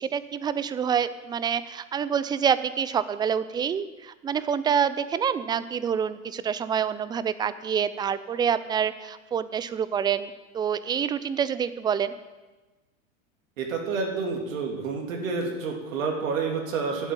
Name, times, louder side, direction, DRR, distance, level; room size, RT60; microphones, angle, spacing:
voice 1, 0.0-12.1, right 7 dB, 10° right, 15 dB, 0.3 m, -27 dB
voice 2, 13.6-17.1, right 4 dB, 75° right, 1 dB, 3.2 m, -29 dB
11.5 x 8.0 x 8.8 m, 1.2 s
hypercardioid pair, 100°, 40 cm